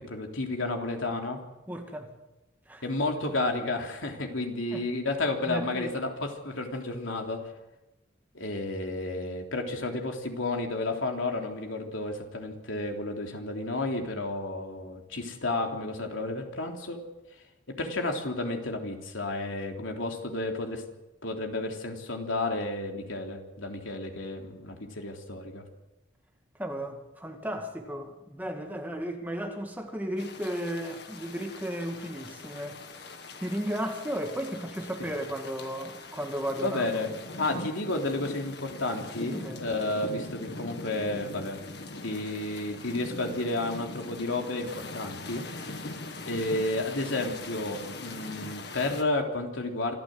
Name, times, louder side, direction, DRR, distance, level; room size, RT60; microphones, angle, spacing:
voice 1, 0.1-1.4 2.8-7.5 8.3-17.0 17.7-20.8 21.2-25.6 36.6-41.6 42.0-45.8 46.2-49.9, left 2 dB, 90° left, 3.5 m, -32 dB
voice 2, 1.7-2.1 2.7-2.8 4.7-4.8 5.5-5.9 26.6-32.8 33.4-36.8 39.3-39.6, equal, 10° right, 2.1 m, -34 dB
sound 1, 30.2-49.0, left 2 dB, 60° left, 2.0 m, -41 dB
26.5 x 14.5 x 7.9 m
head